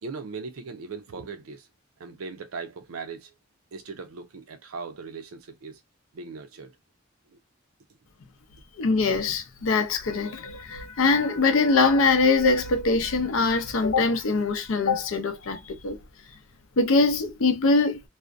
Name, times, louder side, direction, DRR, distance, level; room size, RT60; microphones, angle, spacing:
voice 1, 0.0-1.7 2.0-3.3 3.7-5.8 6.1-6.8 7.3-7.4, right 4 dB, 85° right, 0.5 m, -39 dB
voice 2, 8.8-16.0 16.8-18.0, left 3 dB, 75° left, 0.5 m, -23 dB
2.4 x 2.1 x 2.4 m
head